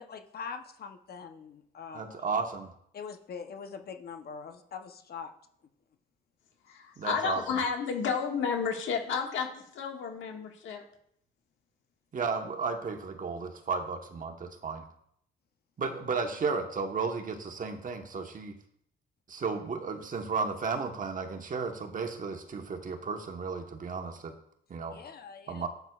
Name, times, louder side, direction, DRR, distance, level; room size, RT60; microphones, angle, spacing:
voice 1, 0.0-2.2 2.9-5.3 24.9-25.7, left 6 dB, 50° left, 6 dB, 0.8 m, -43 dB
voice 2, 1.9-2.7 7.0-7.6 12.1-14.8 15.8-18.6 19.3-24.3 24.7-25.0 25.5-25.7, right 5 dB, 40° right, 5 dB, 1.2 m, -33 dB
voice 3, 6.7-9.5 9.7-10.8, left 6 dB, 75° left, 2 dB, 1.7 m, -31 dB
11.5 x 8.0 x 2.4 m, 0.71 s
cardioid pair, 90°, 20 cm